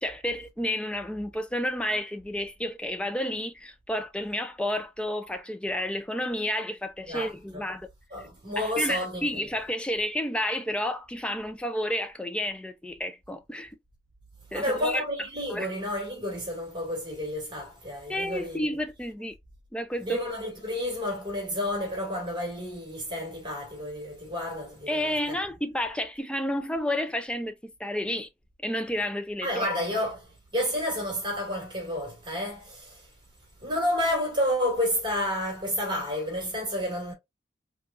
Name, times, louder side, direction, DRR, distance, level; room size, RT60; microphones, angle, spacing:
voice 1, 0.0-7.9 8.6-13.8 14.5-15.0 15.5-15.7 18.1-19.3 19.7-20.2 24.9-28.3 28.6-29.7, left 1 dB, 5° left, 0.4 m, -31 dB
voice 2, 7.1-7.6 8.1-9.4 14.5-18.7 20.0-25.4 29.4-33.1 33.6-37.1, left 1 dB, 25° right, 1.8 m, -30 dB
3.4 x 3.4 x 2.4 m
head